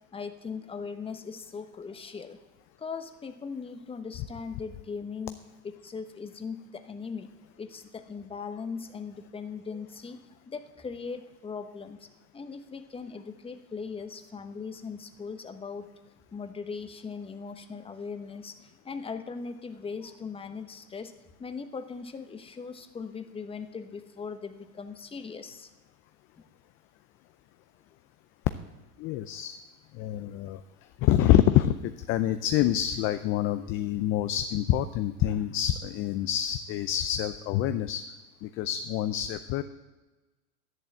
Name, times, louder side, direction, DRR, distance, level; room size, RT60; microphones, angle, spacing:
voice 1, 0.1-2.4 2.8-5.4 5.6-7.3 7.6-12.1 12.3-15.9 16.3-21.1 21.4-25.7, left 5 dB, 10° left, 8 dB, 1.0 m, -39 dB
voice 2, 29.0-29.6 30.0-30.6 31.0-38.0 38.4-39.6, left 12 dB, 30° left, 11 dB, 0.5 m, -26 dB
11.5 x 11.0 x 7.6 m, 1.2 s
hypercardioid pair, 110°, 47 cm